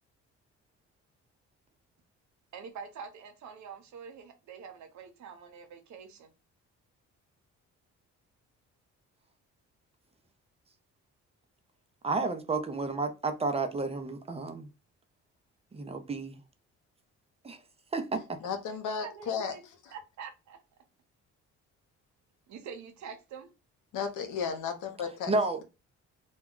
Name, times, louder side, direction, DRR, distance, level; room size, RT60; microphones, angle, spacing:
voice 1, 2.5-6.3 19.0-19.6 19.9-20.6 22.5-23.5, right 6 dB, 70° right, 0.8 m, -45 dB
voice 2, 12.0-14.7 15.7-16.4 17.4-17.6 17.9-18.4 25.3-25.6, right 3 dB, 20° right, 0.5 m, -31 dB
voice 3, 18.4-19.9 23.9-25.3, left 6 dB, 85° left, 0.7 m, -34 dB
2.2 x 2.2 x 3.7 m
cardioid pair, 90°, 30 cm